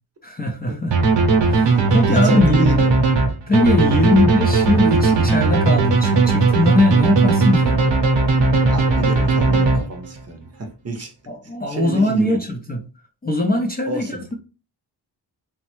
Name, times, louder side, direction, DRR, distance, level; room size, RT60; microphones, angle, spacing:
voice 1, 0.2-1.0 1.4-2.8 3.5-7.8 11.3-12.8 13.2-14.3, left 2 dB, 25° left, 0.4 m, -20 dB
sound 1, 0.9-10.2, right 3 dB, 90° right, 0.7 m, -17 dB
voice 2, 1.7-2.9 4.0-4.2 8.7-11.1 11.7-12.4 13.9-14.3, right 2 dB, 35° right, 0.6 m, -30 dB
3.1 x 2.0 x 3.0 m
wide cardioid pair, 120°, 42 cm